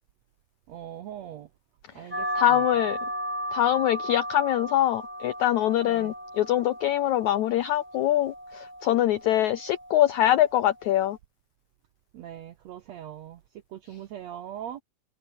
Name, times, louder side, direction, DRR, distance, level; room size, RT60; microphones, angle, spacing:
voice 1, 0.7-1.5 1.9-2.8 5.8-6.1 12.1-13.4 13.7-14.8, right 10 dB, 75° right, 1.6 m, -41 dB
sound 1, 2.1-11.2, equal, 5° right, 4.4 m, -35 dB
voice 2, 2.3-3.0 3.5-11.2, left 12 dB, 70° left, 1.9 m, -24 dB
omnidirectional pair, 4.3 m